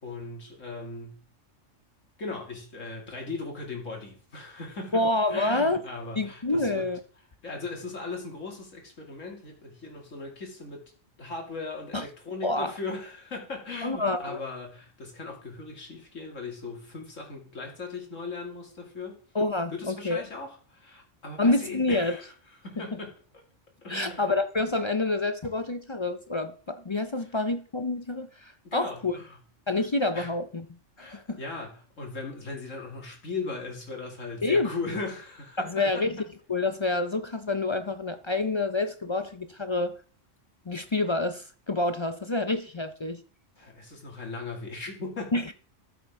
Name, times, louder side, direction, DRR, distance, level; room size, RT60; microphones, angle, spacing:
voice 1, 0.0-1.2 2.2-5.0 5.3-6.9 7.4-10.8 11.2-19.2 19.7-22.3 22.6-23.1 23.8-24.3 27.2-27.3 28.6-29.4 30.1-30.3 31.0-36.0 43.6-45.5, left 3 dB, 85° left, 3.0 m, -38 dB
voice 2, 4.9-5.8 6.2-7.0 11.9-12.0 12.4-12.7 13.8-14.4 19.3-20.2 21.4-22.2 22.8-22.9 23.9-29.1 29.7-30.6 31.0-31.4 34.4-34.7 35.6-36.2 36.5-40.0 40.7-43.2 45.3-45.5, left 2 dB, 35° left, 0.4 m, -27 dB
13.5 x 8.2 x 3.7 m
omnidirectional pair, 1.3 m